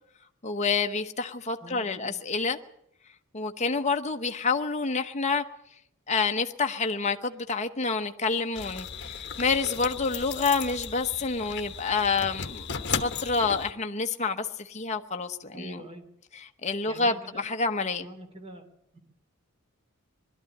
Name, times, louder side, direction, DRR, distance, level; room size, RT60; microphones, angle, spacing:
voice 1, 0.4-2.6 3.3-5.4 6.1-12.7 13.0-15.8 16.3-18.0, left 4 dB, 30° left, 1.0 m, -28 dB
voice 2, 1.6-2.2 15.5-16.0 16.9-17.4 18.0-18.6 18.9-19.0, right 1 dB, 25° right, 2.9 m, -43 dB
sound 1, 8.5-13.7, left 6 dB, 55° left, 1.1 m, -35 dB
21.0 x 13.0 x 9.8 m
head